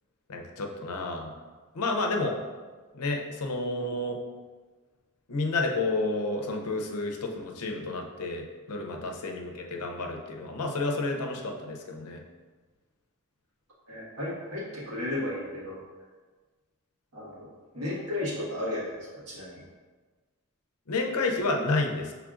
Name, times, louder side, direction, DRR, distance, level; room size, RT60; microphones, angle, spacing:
voice 1, 0.3-1.3 1.7-2.4 2.9-4.2 5.3-12.2 20.9-22.1, left 2 dB, 90° left, 2 dB, 0.6 m, -30 dB
voice 2, 13.9-15.8 17.1-17.5 17.7-19.6, left 1 dB, 85° right, -6 dB, 1.5 m, -34 dB
6.1 x 3.3 x 2.4 m, 1.4 s
head